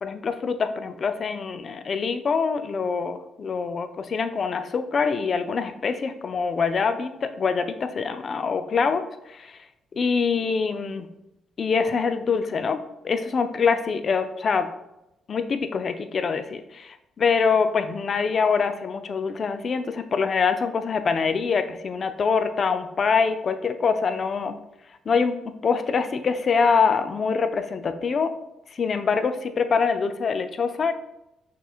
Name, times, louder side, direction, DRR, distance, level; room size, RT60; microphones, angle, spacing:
voice 1, 0.0-9.6 10.0-11.1 11.6-14.7 15.3-24.6 25.1-28.3 28.7-30.9, left 5 dB, 45° left, 9 dB, 0.3 m, -24 dB
5.9 x 2.9 x 2.4 m, 0.89 s
cardioid pair, 90°, 0 cm